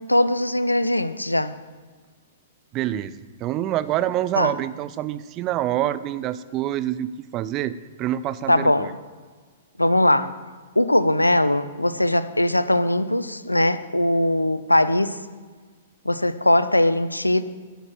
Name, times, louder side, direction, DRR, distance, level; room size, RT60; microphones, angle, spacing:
voice 1, 0.0-1.5 4.4-4.5 8.5-8.9 9.8-10.3 10.8-15.2 16.1-17.4, left 1 dB, 85° left, 13 dB, 0.6 m, -20 dB
voice 2, 2.7-3.2 3.4-8.9, right 12 dB, 30° right, 15 dB, 0.5 m, -26 dB
10.5 x 6.8 x 7.6 m, 1.5 s
figure-of-eight pair, 110°, 0 cm